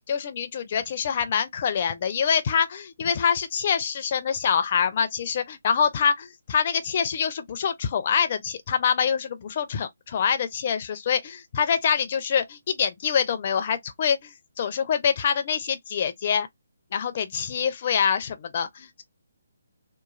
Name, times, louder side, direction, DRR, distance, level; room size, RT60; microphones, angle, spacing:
voice 1, 0.1-16.5 16.9-19.0, left 7 dB, 40° left, 0.5 m, -25 dB
3.0 x 2.2 x 2.4 m
figure-of-eight pair, 145°, 0 cm